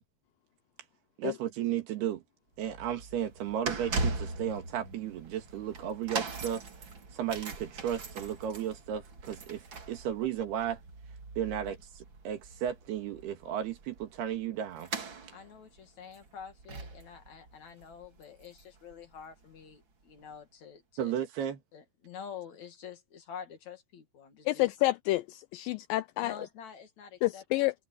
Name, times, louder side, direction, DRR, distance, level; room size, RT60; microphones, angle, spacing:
voice 1, 1.2-2.2 2.6-6.6 7.1-10.8 11.4-14.9 21.0-21.6, right 10 dB, 85° right, 4.1 m, -34 dB
sound 1, 2.6-18.9 19.2-19.4 20.2-20.3, right 3 dB, 35° right, 2.4 m, -40 dB
voice 2, 15.3-21.2 21.7-24.7 26.2-27.7, left 7 dB, 50° left, 3.0 m, -47 dB
voice 3, 24.5-26.3 27.2-27.7, left 18 dB, 80° left, 2.0 m, -29 dB
omnidirectional pair, 4.4 m